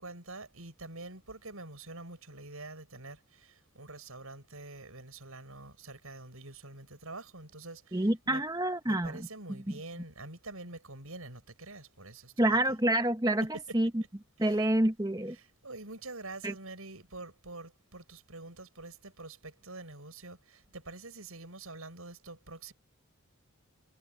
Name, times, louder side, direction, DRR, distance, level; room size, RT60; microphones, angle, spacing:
voice 1, 0.0-8.4 8.9-12.8 14.4-14.6 15.3-22.7, right 2 dB, 85° right, 6.8 m, -46 dB
voice 2, 7.9-9.2 12.4-13.5 13.7-14.0 14.4-15.4 16.4-16.5, right 1 dB, 15° right, 1.1 m, -27 dB
head